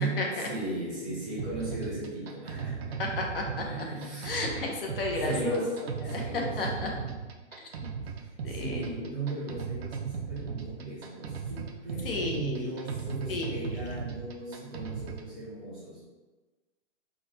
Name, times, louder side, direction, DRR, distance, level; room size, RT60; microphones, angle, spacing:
voice 1, 0.0-4.4 5.2-6.8 8.0-16.0, right 2 dB, ahead, -17 dB, 0.6 m, -37 dB
sound 1, 1.4-15.3, right 6 dB, 55° right, 0.6 m, -37 dB
voice 2, 3.0-3.6 4.2-6.9 7.5-7.9 8.4-9.1 12.0-12.8 13.3-13.7, left 2 dB, 45° left, 0 dB, 0.9 m, -33 dB
4.0 x 2.9 x 4.2 m, 1.3 s
hypercardioid pair, 170°, 37 cm